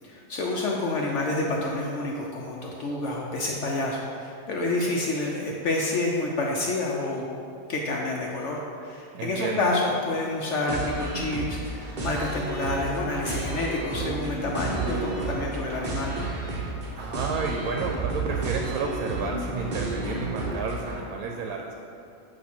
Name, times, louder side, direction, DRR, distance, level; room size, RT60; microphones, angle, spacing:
voice 1, 0.0-7.3 7.7-16.1, left 2 dB, 65° left, -1 dB, 0.9 m, -28 dB
voice 2, 9.1-9.7 16.9-21.7, right 4 dB, 80° right, 1 dB, 1.0 m, -31 dB
sound 1, 10.7-21.0, right 3 dB, 40° right, 0.9 m, -31 dB
8.2 x 2.8 x 5.8 m, 2.6 s
omnidirectional pair, 1.5 m